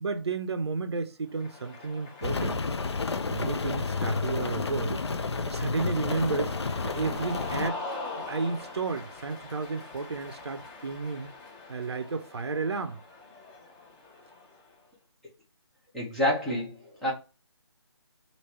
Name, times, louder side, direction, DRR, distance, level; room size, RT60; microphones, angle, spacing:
voice 1, 0.0-2.6 3.3-5.1 5.5-6.6 6.8-7.9 8.3-11.3 11.7-13.0, right 4 dB, 70° right, 0.5 m, -32 dB
Cheering, 1.3-14.7, left 3 dB, 15° left, 0.7 m, -43 dB
Rain, 2.2-7.7, left 4 dB, 70° left, 0.5 m, -31 dB
voice 2, 15.9-17.1, left 1 dB, ahead, 0.3 m, -28 dB
3.0 x 2.8 x 3.1 m
figure-of-eight pair, 150°, 14 cm